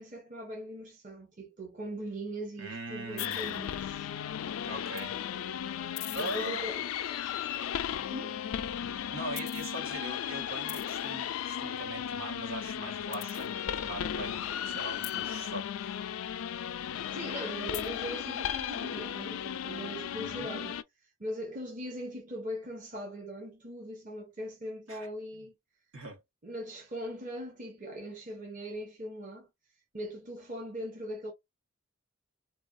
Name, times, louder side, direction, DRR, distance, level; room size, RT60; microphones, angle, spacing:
voice 1, 0.0-4.1 6.2-7.3 8.1-8.4 17.1-20.8 21.2-25.5 26.4-29.5 29.9-31.3, equal, 40° right, 0.9 m, -40 dB
voice 2, 2.6-3.6 4.6-5.2 6.1-6.7 9.1-16.0 20.1-20.5 24.9-25.1 25.3-25.4 25.9-26.2, right 1 dB, 75° right, 1.5 m, -41 dB
sound 1, 3.2-20.8, left 9 dB, 85° left, 0.3 m, -35 dB
3.3 x 2.3 x 2.5 m
head